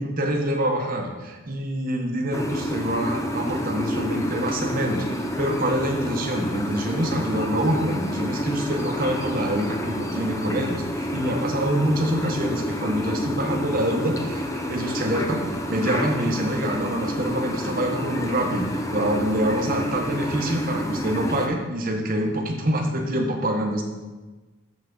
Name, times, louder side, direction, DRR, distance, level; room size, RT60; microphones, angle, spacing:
voice 1, 0.0-23.8, right 1 dB, 40° right, 2 dB, 0.9 m, -26 dB
sound 1, 2.3-21.5, equal, 15° left, 0.5 m, -29 dB
7.1 x 5.6 x 3.9 m, 1.2 s
head